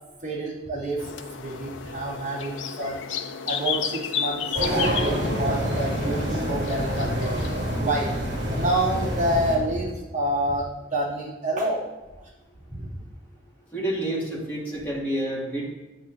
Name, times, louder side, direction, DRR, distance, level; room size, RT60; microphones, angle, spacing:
voice 1, 0.2-1.0 1.4-3.0 3.5-7.4 7.7-8.1 8.5-11.8 12.7-12.9, right 1 dB, 40° right, -8 dB, 3.1 m, -28 dB
sound 1, 1.0-7.8, left 7 dB, 80° left, 0.6 m, -32 dB
sound 2, 4.5-9.6, equal, 65° right, 2.7 m, -27 dB
voice 2, 13.7-15.7, right 1 dB, 10° left, -7 dB, 2.6 m, -29 dB
10.5 x 8.2 x 2.9 m, 1.1 s
head